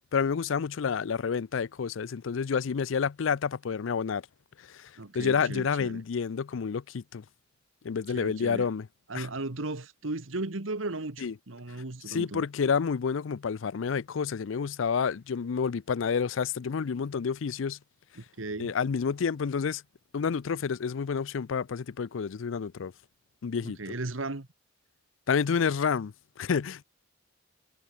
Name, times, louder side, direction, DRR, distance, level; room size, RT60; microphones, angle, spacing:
voice 1, 0.1-4.2 4.7-7.2 7.8-8.9 9.1-9.3 11.2-11.3 12.1-17.8 18.6-19.8 20.1-22.9 23.4-23.8 25.3-26.8, left 6 dB, 70° left, 0.5 m, -29 dB
voice 2, 5.0-6.0 8.1-8.7 9.1-12.4 18.2-18.7 23.6-24.5, right 2 dB, 85° right, 1.7 m, -36 dB
head